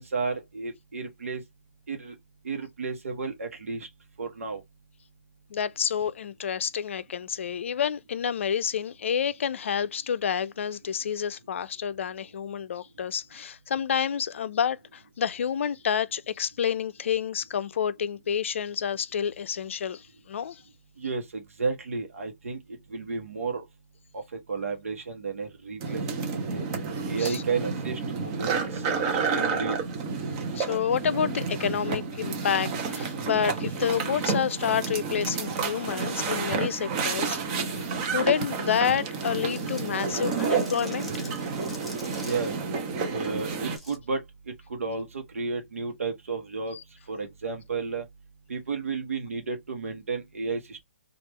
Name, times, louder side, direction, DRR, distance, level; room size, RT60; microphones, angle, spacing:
voice 1, 0.0-1.4 1.9-2.1 2.4-3.9 4.2-4.6 21.0-22.6 22.9-23.6 24.1-24.2 24.5-26.2 26.5-26.6 27.1-28.8 29.3-29.7 42.2-42.5 43.1-44.2 44.7-46.8 47.1-48.0 48.5-50.8, right 4 dB, 80° right, 1.0 m, -32 dB
voice 2, 5.5-20.6 27.2-27.4 30.5-41.3 46.7-46.8, left 8 dB, 65° left, 0.4 m, -29 dB
sound 1, 25.8-43.8, right 5 dB, 30° right, 0.8 m, -30 dB
sound 2, 39.3-42.5 43.7-44.0, left 1 dB, ahead, 0.7 m, -46 dB
3.3 x 2.4 x 3.2 m
hypercardioid pair, 145°, 7 cm